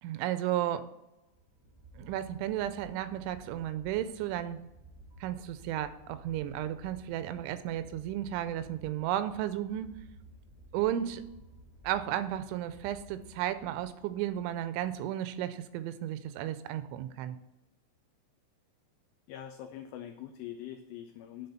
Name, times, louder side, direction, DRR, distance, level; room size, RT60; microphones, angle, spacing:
voice 1, 0.0-0.9 2.0-4.6 5.2-10.0 10.7-11.2 11.8-17.4, right 12 dB, 85° right, 11 dB, 2.9 m, -33 dB
sound 1, 1.2-15.4, right 1 dB, 50° left, 1.5 m, -55 dB
voice 2, 19.3-21.5, left 11 dB, 90° left, 7 dB, 2.4 m, -43 dB
10.5 x 3.9 x 5.6 m, 0.93 s
omnidirectional pair, 5.5 m